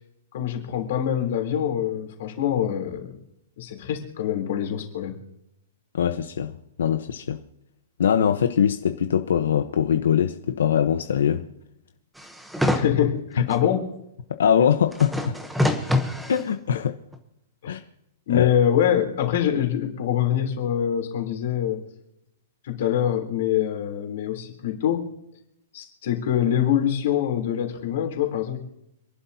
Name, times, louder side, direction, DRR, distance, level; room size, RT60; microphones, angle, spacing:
voice 1, 0.3-3.1 3.6-5.2 12.7-13.8 17.6-17.8 18.3-21.8 22.6-25.0 25.7-28.6, left 10 dB, 45° left, 3.4 m, -24 dB
voice 2, 5.9-6.5 6.8-7.4 8.0-11.5 14.3-15.4 16.3-16.9 17.7-17.8 18.3-18.5, left 8 dB, 85° left, 1.0 m, -22 dB
sound 1, 12.2-12.9 13.5-13.6 14.9-16.4 17.1-17.2, left 1 dB, ahead, 0.9 m, -25 dB
27.0 x 11.5 x 2.8 m
hypercardioid pair, 180°, 0 cm